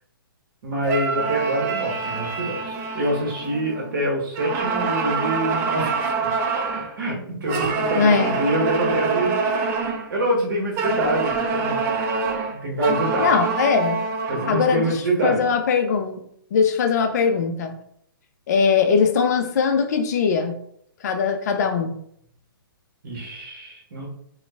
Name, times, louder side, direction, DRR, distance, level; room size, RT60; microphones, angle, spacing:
voice 1, 0.6-6.3 6.8-9.3 10.1-11.8 12.5-13.3 14.3-15.4 23.0-24.1, right 1 dB, 60° right, -2 dB, 1.4 m, -26 dB
sound 1, 0.8-3.9 4.3-6.9 7.5-10.1 10.8-15.0, right 4 dB, 20° right, 0.4 m, -25 dB
voice 2, 8.0-8.3 13.2-14.0 14.5-14.8 15.2-16.2 16.5-17.7 18.5-20.6 21.0-21.9, left 5 dB, 45° left, 6 dB, 0.4 m, -20 dB
3.0 x 2.3 x 3.2 m, 0.68 s
figure-of-eight pair, 130°, 12 cm